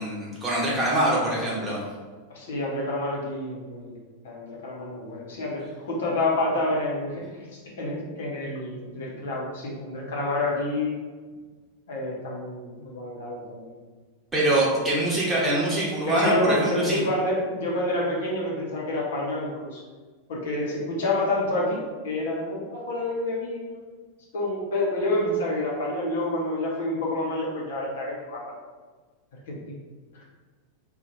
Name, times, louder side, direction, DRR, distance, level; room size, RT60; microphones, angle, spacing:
voice 1, 0.0-1.8 14.3-17.0, right 1 dB, 10° right, -6 dB, 1.0 m, -24 dB
voice 2, 2.3-4.0 4.2-10.9 11.9-13.7 14.7-14.9 16.1-19.8 20.3-23.9 24.3-28.5 29.5-29.8 30.1-30.2, left 1 dB, 60° left, -4 dB, 0.8 m, -28 dB
2.6 x 2.4 x 4.2 m, 1.4 s
figure-of-eight pair, 90°, 0 cm